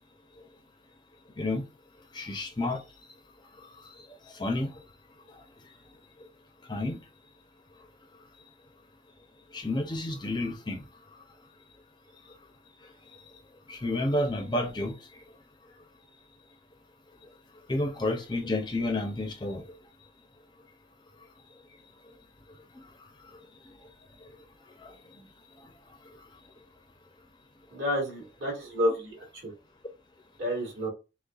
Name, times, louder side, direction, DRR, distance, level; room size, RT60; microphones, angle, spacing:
voice 1, 2.1-2.8 3.5-4.8 5.3-5.4 6.2-6.3 6.6-7.0 9.5-10.9 12.3-12.4 12.8-13.4 13.7-15.2 17.7-19.7 22.0-22.1 22.5-23.9 24.2-24.4 24.8-25.3 25.6-26.3, left 1 dB, 25° left, 0.5 m, -32 dB
voice 2, 27.7-29.2 29.4-29.5 30.4-30.9, equal, 65° right, 2.0 m, -29 dB
6.4 x 2.2 x 2.3 m
head